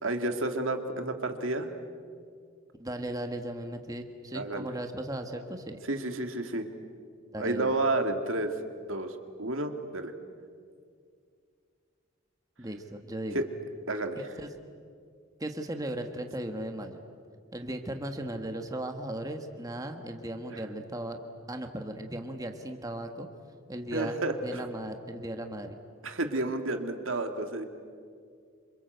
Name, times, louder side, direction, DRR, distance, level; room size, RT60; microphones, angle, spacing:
voice 1, 0.0-1.7 4.3-4.7 5.9-6.7 7.4-8.5 8.9-10.1 13.3-13.4 13.9-14.2 20.5-20.6 23.9-24.3 26.0-27.7, right 2 dB, 75° right, 6 dB, 2.2 m, -31 dB
voice 2, 2.8-5.8 7.3-7.8 12.6-13.4 14.4-14.5 15.4-17.0 17.5-21.2 21.5-23.3 23.7-24.1 24.4-25.7, right 1 dB, 15° right, 5 dB, 1.5 m, -37 dB
27.5 x 26.5 x 8.1 m, 2.2 s
head